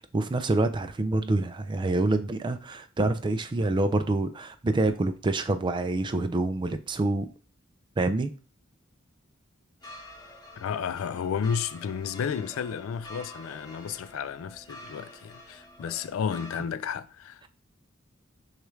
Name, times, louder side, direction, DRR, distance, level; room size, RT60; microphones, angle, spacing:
voice 1, 0.1-7.3 8.0-8.3, right 2 dB, 25° right, 0.3 m, -26 dB
sound 1, 9.8-16.6, left 1 dB, 20° left, 1.7 m, -47 dB
voice 2, 10.6-17.5, left 7 dB, 85° left, 0.3 m, -32 dB
6.3 x 2.4 x 3.1 m
head